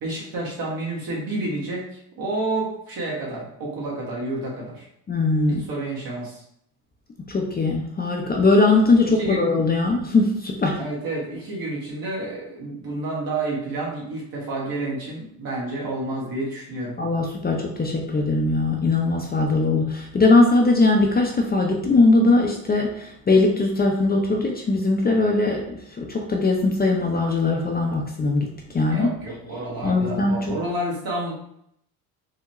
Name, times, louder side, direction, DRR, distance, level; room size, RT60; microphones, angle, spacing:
voice 1, 0.0-4.9 5.5-6.4 9.1-9.5 10.8-17.0 28.9-31.3, right 2 dB, 55° right, -3 dB, 1.4 m, -30 dB
voice 2, 5.1-5.6 7.3-10.8 17.0-29.1 29.8-30.6, left 3 dB, 20° left, 1 dB, 0.6 m, -20 dB
3.7 x 2.1 x 3.0 m, 0.73 s
hypercardioid pair, 70°, 43 cm